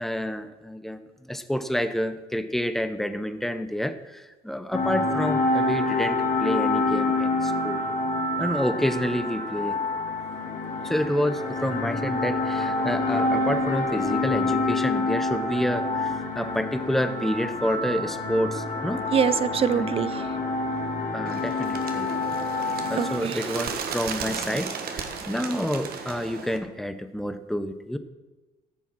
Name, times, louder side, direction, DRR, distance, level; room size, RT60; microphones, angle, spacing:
voice 1, 0.0-7.8 8.4-9.8 10.8-19.1 19.8-19.9 21.1-22.1 22.9-28.0, equal, ahead, 10 dB, 0.8 m, -29 dB
sound 1, 4.7-23.2, left 2 dB, 50° left, 2.4 m, -27 dB
voice 2, 19.1-20.1 23.0-23.4, right 8 dB, 35° right, 16 dB, 0.5 m, -24 dB
Bird, 21.3-26.6, right 6 dB, 65° right, 1.5 m, -34 dB
15.0 x 7.0 x 6.1 m, 1.2 s
cardioid pair, 110°, 17 cm